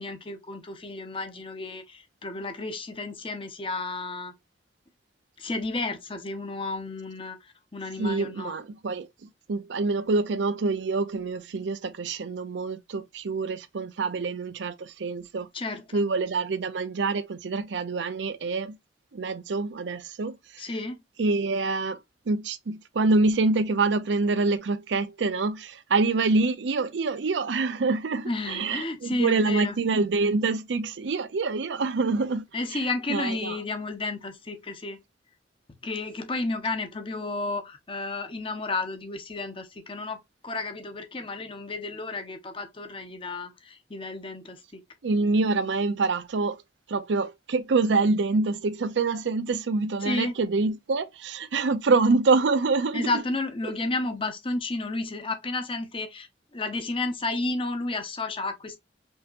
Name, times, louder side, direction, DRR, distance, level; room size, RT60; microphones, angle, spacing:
voice 1, 0.0-4.3 5.4-7.4 7.7-8.6 15.5-16.1 20.6-21.0 28.2-29.8 32.5-35.0 35.7-44.8 50.0-50.3 52.9-58.8, left 2 dB, 30° left, 0.8 m, -32 dB
voice 2, 8.0-15.5 15.9-18.8 19.1-20.6 21.2-22.0 22.3-32.4 32.7-32.8 33.1-33.6 45.0-46.6 46.9-53.2, right 3 dB, 80° right, 0.5 m, -26 dB
5.4 x 2.8 x 2.4 m
head